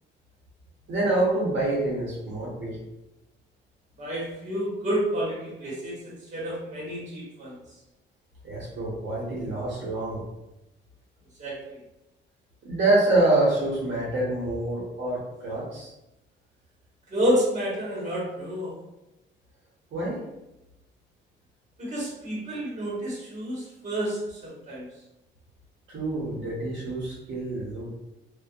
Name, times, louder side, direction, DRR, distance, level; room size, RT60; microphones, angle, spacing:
voice 1, 0.9-2.8 8.4-10.2 12.6-15.9 19.9-20.2 25.9-27.9, right 2 dB, 65° right, -6 dB, 1.0 m, -26 dB
voice 2, 4.0-7.6 11.4-11.8 17.1-18.7 21.8-24.9, equal, 35° right, -5 dB, 1.3 m, -29 dB
2.5 x 2.4 x 2.4 m, 0.93 s
cardioid pair, 90°, 20 cm